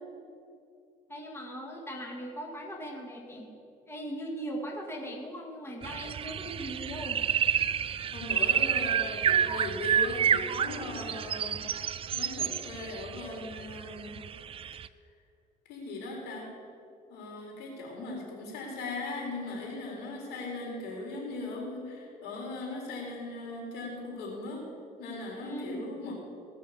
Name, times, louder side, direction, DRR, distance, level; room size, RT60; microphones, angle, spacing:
voice 1, 1.1-3.5 3.9-7.2 25.4-25.9, right 1 dB, 15° left, 0 dB, 2.0 m, -39 dB
sound 1, 5.8-14.9, right 8 dB, 35° right, 0.4 m, -29 dB
voice 2, 8.1-14.2 15.7-16.5 17.1-24.6 25.0-26.1, left 2 dB, 85° left, -1 dB, 3.6 m, -38 dB
17.5 x 6.5 x 6.9 m, 2.4 s
cardioid pair, 110°, 17 cm